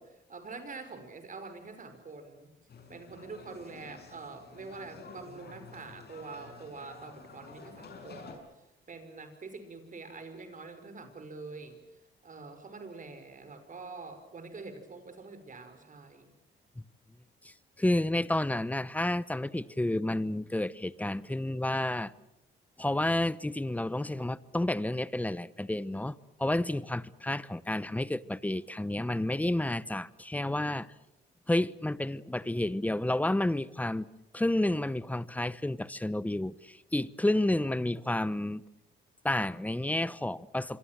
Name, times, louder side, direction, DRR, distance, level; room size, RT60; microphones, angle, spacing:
voice 1, 0.0-2.5 2.9-8.4 8.9-11.8 12.2-16.3, right 4 dB, 40° right, 5.5 m, -45 dB
sound 1, 2.7-8.3, left 4 dB, 55° left, 6.3 m, -50 dB
voice 2, 17.4-22.1 22.8-30.9 31.5-34.1 34.3-38.6 39.2-40.8, left 1 dB, 5° left, 0.9 m, -30 dB
26.5 x 23.5 x 7.6 m
cardioid pair, 90°, 20 cm